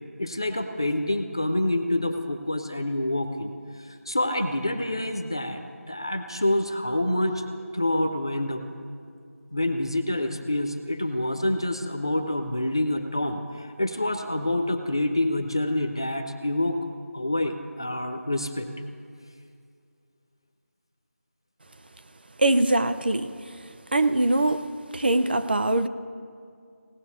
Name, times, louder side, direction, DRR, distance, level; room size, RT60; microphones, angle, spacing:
voice 1, 0.2-7.4 7.7-8.7 9.5-16.8 17.1-18.7, left 1 dB, 20° left, 6 dB, 0.3 m, -27 dB
voice 2, 22.4-23.4 23.9-24.7 24.9-25.9, right 2 dB, 40° right, 11 dB, 0.5 m, -22 dB
17.5 x 6.7 x 9.8 m, 2.3 s
figure-of-eight pair, 170°, 8 cm